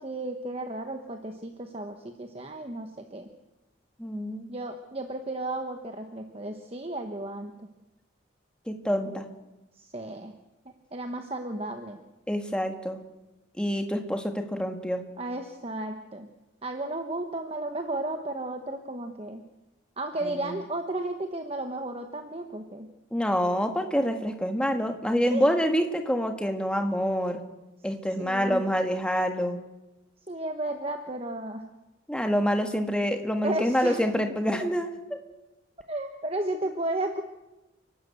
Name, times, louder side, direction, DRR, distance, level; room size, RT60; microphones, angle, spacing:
voice 1, 0.0-3.3 4.5-7.5 9.7-10.4 10.9-12.0 15.2-16.3 16.6-19.4 20.0-22.9 25.3-25.5 28.2-28.6 30.3-31.7 33.4-34.0 35.9-37.2, right 2 dB, 30° right, 5 dB, 1.1 m, -33 dB
voice 2, 4.0-4.5 8.7-9.2 12.3-13.0 13.6-15.0 20.2-20.5 23.1-27.4 27.8-29.6 32.1-34.9, equal, 5° left, 5 dB, 1.6 m, -27 dB
29.5 x 12.5 x 8.1 m, 1.0 s
head